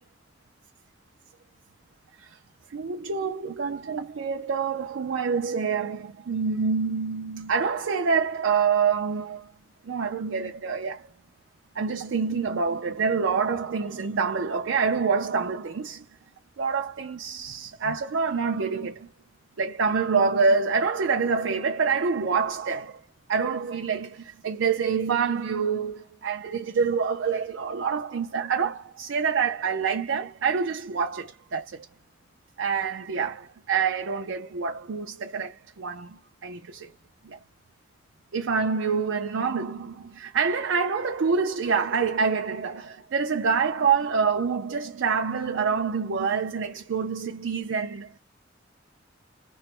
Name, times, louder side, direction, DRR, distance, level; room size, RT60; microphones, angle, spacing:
voice 1, 2.7-9.5 9.8-11.1 11.8-16.1 16.6-19.1 19.6-23.0 23.3-31.9 32.6-36.9 37.2-37.4 38.3-48.2, right 5 dB, 85° right, 0.5 m, -26 dB
3.1 x 2.1 x 3.0 m
head